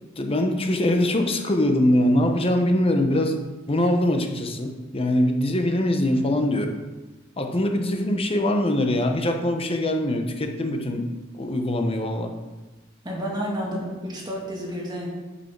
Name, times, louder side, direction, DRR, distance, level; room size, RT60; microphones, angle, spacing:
voice 1, 0.2-3.4 3.7-6.8 7.4-12.3, left 1 dB, 30° left, 4 dB, 0.9 m, -23 dB
voice 2, 13.0-15.1, equal, 20° right, -3 dB, 2.2 m, -30 dB
6.9 x 6.1 x 6.0 m, 1.2 s
head